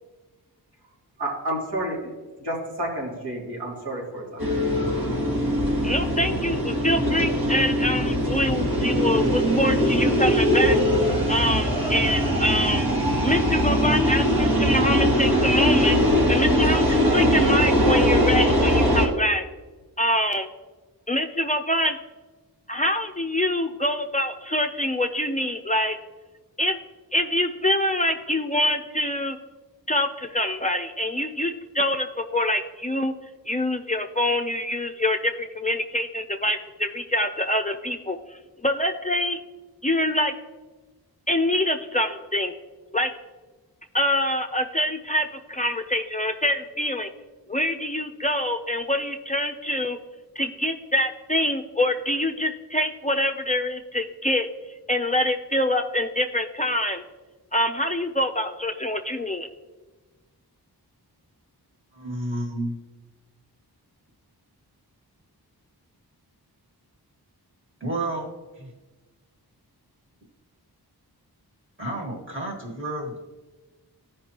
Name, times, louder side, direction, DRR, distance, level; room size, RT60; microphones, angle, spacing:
voice 1, 1.2-2.1 2.4-4.4, right 1 dB, 85° right, -5 dB, 2.8 m, -30 dB
sound 1, 4.4-19.1, equal, 65° right, 1.9 m, -21 dB
voice 2, 5.8-10.8 11.3-12.9 13.2-16.0 16.3-19.5 20.0-20.5 21.1-22.0 22.7-26.0 26.6-26.8 27.1-29.4 29.9-32.1 32.3-33.1 33.5-38.2 38.6-39.4 39.8-40.3 41.3-42.5 42.9-43.1 43.9-47.1 47.5-50.0 50.4-54.5 54.9-57.0 57.5-59.5, left 1 dB, 20° left, 5 dB, 0.5 m, -25 dB
voice 3, 61.9-62.8 67.8-68.3 68.5-68.7 71.8-73.2, right 1 dB, 30° right, 0 dB, 1.8 m, -30 dB
14.0 x 5.3 x 2.9 m, 1.3 s
wide cardioid pair, 75°, 39 cm